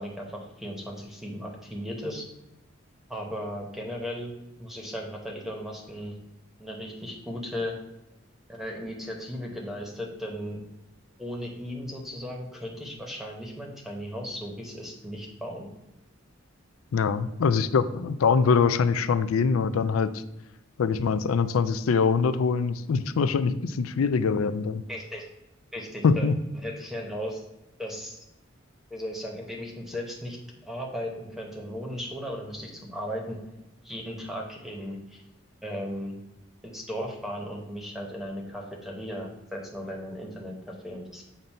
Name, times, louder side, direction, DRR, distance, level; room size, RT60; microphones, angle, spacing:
voice 1, 0.0-2.2 3.1-4.3 4.6-6.2 6.6-7.8 8.5-10.6 11.2-15.7 24.9-25.3 25.7-26.3 26.5-27.4 27.8-28.2 28.9-30.4 30.6-33.4 33.8-35.2 35.6-36.2 36.6-41.2, equal, ahead, 0 dB, 0.8 m, -36 dB
voice 2, 16.9-20.2 20.8-24.8 26.0-26.3, left 5 dB, 90° left, 13 dB, 0.4 m, -23 dB
7.2 x 2.6 x 5.3 m, 0.93 s
head